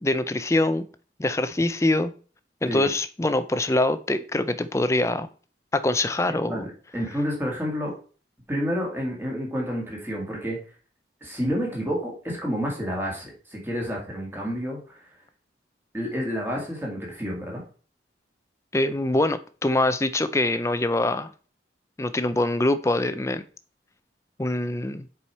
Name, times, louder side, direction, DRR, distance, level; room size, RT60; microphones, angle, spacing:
voice 1, 0.0-0.9 1.2-2.1 2.6-5.3 5.7-6.7 18.7-21.3 22.0-23.4 24.4-25.1, left 2 dB, 15° left, 0.4 m, -24 dB
voice 2, 6.2-7.9 8.5-10.6 11.2-15.0 15.9-17.6, equal, 10° right, 2.0 m, -29 dB
7.1 x 4.9 x 4.3 m
head